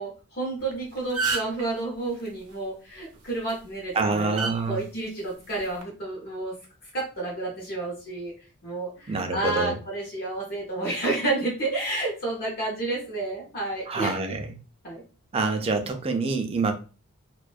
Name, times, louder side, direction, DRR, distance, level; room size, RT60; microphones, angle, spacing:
voice 1, 0.0-4.4 4.7-6.5 6.8-8.3 8.6-14.2 14.8-15.0, right 2 dB, 45° left, -3 dB, 0.7 m, -30 dB
sound 1, 0.6-0.7 1.0-1.6 3.3-3.5 4.4-4.5 5.6-5.8, right 4 dB, 80° right, 0.5 m, -27 dB
voice 2, 3.9-4.8 9.1-9.8 13.9-14.6 15.3-16.7, right 3 dB, 25° right, 5 dB, 0.3 m, -26 dB
2.5 x 2.1 x 2.2 m, 0.35 s
head